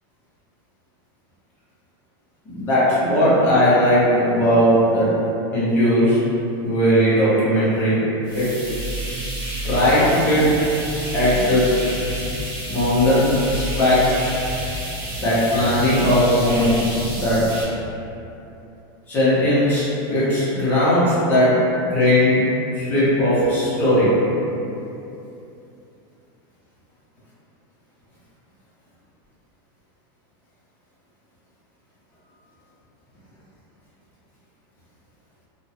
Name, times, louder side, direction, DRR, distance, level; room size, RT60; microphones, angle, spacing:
voice 1, 2.5-5.1 5.5-6.2 6.6-8.0 8.3-8.5 9.6-10.6 11.1-11.7 12.7-14.3 15.2-17.4 19.1-21.5 21.8-22.4 22.7-24.2, equal, 15° left, -11 dB, 0.7 m, -18 dB
sound 1, 8.2-17.6, right 1 dB, 40° right, 0.8 m, -29 dB
2.9 x 2.2 x 2.7 m, 2.8 s
supercardioid pair, 180°, 13 cm